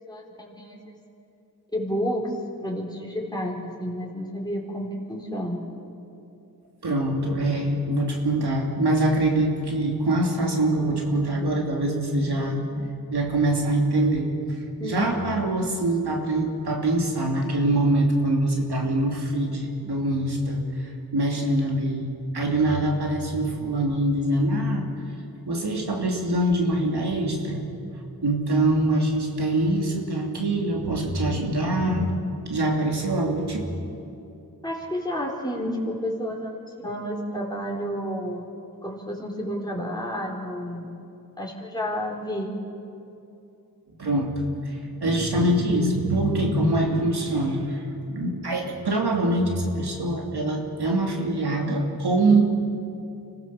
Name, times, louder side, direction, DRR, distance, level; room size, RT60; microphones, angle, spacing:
voice 1, 0.1-0.9 1.7-2.3 2.6-5.6 14.8-15.1 34.6-38.5 38.8-40.9 41.4-42.5, equal, 10° left, -2 dB, 4.2 m, -30 dB
voice 2, 6.8-14.3 14.8-20.6 21.1-24.8 25.5-27.6 28.2-32.1 32.5-33.7 44.0-47.8 48.1-52.4, right 1 dB, 90° right, 1 dB, 2.9 m, -24 dB
25.0 x 16.5 x 7.1 m, 2.8 s
cardioid pair, 45°, 38 cm